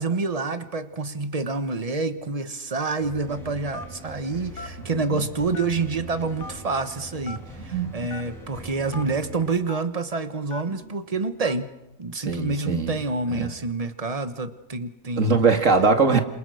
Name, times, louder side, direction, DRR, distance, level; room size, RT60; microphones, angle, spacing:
voice 1, 0.0-11.7 12.0-15.3, right 3 dB, 25° right, 10 dB, 1.4 m, -28 dB
sound 1, 3.0-9.5, right 1 dB, ahead, 7.4 m, -42 dB
Telephone, 3.7-4.0 4.6-4.7 5.5-5.9 6.4-6.5 7.2-7.4 8.1-8.2 8.9-9.0 9.7-9.8 10.5-10.7 11.4-11.6, left 3 dB, 60° left, 1.9 m, -37 dB
voice 2, 4.9-5.2 7.7-7.9 12.1-13.0 13.3-13.5 15.2-16.2, right 4 dB, 65° right, 6 dB, 2.5 m, -21 dB
28.0 x 27.5 x 6.5 m, 0.91 s
omnidirectional pair, 1.4 m